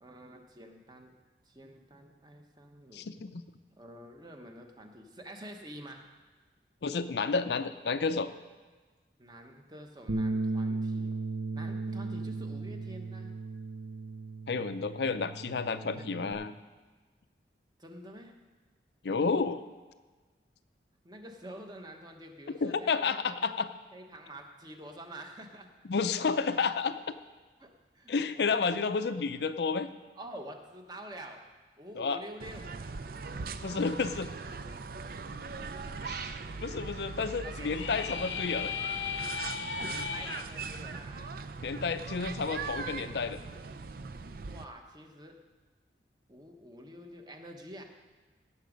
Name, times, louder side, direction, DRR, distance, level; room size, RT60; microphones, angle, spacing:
voice 1, 0.0-1.1 1.4-3.1 3.7-6.0 9.2-11.2 11.5-13.3 17.8-18.3 21.0-23.4 23.9-25.7 27.6-28.7 30.1-31.4 31.8-32.7 35.5-36.1 37.4-37.8 39.7-41.3 44.4-45.4 46.3-47.8, right 1 dB, 25° right, 3 dB, 1.1 m, -48 dB
voice 2, 2.9-3.4 6.8-8.3 14.5-16.5 19.0-19.6 22.6-23.7 25.9-27.0 28.1-29.9 32.0-32.2 33.6-34.3 36.1-38.7 41.6-43.4, left 4 dB, 65° left, 11 dB, 0.5 m, -31 dB
Bass guitar, 10.1-16.3, right 3 dB, 90° right, 1.1 m, -36 dB
sound 1, 32.4-44.6, right 4 dB, 55° right, 0.5 m, -40 dB
sound 2, 37.5-40.4, left 7 dB, 90° left, 0.8 m, -36 dB
17.0 x 7.1 x 5.2 m, 1.3 s
head